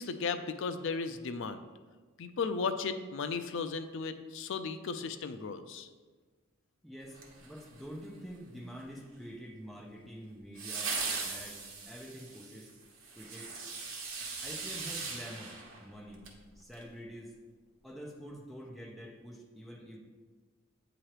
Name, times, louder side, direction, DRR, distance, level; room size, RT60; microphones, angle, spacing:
voice 1, 0.0-1.6 2.2-5.9, left 5 dB, 60° left, 10 dB, 0.4 m, -35 dB
voice 2, 6.8-12.7 13.2-13.5 14.4-16.3 16.6-17.4 17.8-20.0, equal, ahead, -2 dB, 0.8 m, -47 dB
sound 1, 7.1-8.1 10.6-16.4 16.7-16.8, right 4 dB, 65° right, 1.1 m, -39 dB
8.7 x 3.0 x 4.8 m, 1.4 s
head